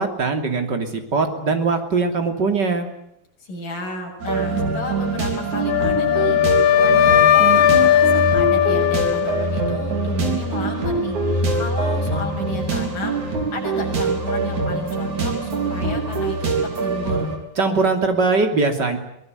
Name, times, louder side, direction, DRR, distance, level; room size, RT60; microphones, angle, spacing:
voice 1, 0.0-2.9 17.6-19.0, right 4 dB, 30° right, 6 dB, 3.1 m, -21 dB
voice 2, 3.4-16.5 16.8-17.3, left 2 dB, 65° left, 0 dB, 8.6 m, -33 dB
sound 1, 4.2-17.4, right 3 dB, 55° right, 5.4 m, -24 dB
Wind instrument woodwind instrument, 5.7-9.8, left 10 dB, 85° left, 3.1 m, -17 dB
23.0 x 20.0 x 9.2 m, 0.79 s
omnidirectional pair, 4.0 m